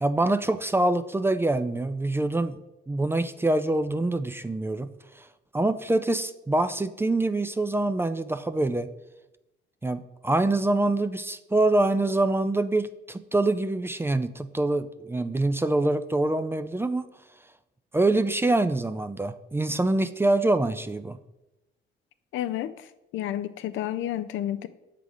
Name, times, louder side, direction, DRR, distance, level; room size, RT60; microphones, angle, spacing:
voice 1, 0.0-2.6 2.9-4.9 5.2-5.3 5.5-8.9 9.8-17.1 17.9-21.2, right 2 dB, 10° right, 11 dB, 0.3 m, -25 dB
voice 2, 22.3-24.7, left 12 dB, 80° left, 13 dB, 0.4 m, -31 dB
7.0 x 3.9 x 4.8 m, 0.94 s
cardioid pair, 90°, 20 cm